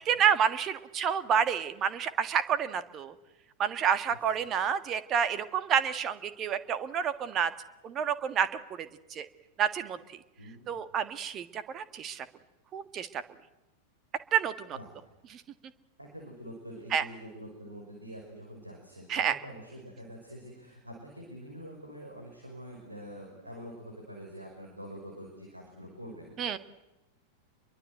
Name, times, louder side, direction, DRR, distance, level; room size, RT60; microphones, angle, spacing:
voice 1, 0.0-3.1 3.6-7.5 7.8-8.5 8.8-9.3 9.6-10.0 10.7-12.2 12.7-13.2 14.3-14.8 15.3-15.4 16.9-17.0 19.1-19.3 26.4-26.6, right 8 dB, 30° right, 12 dB, 1.6 m, -29 dB
voice 2, 10.4-10.8 14.7-14.9 16.0-26.6, equal, 85° right, 1 dB, 5.9 m, -46 dB
28.0 x 23.0 x 8.0 m, 1.0 s
figure-of-eight pair, 90°, 0 cm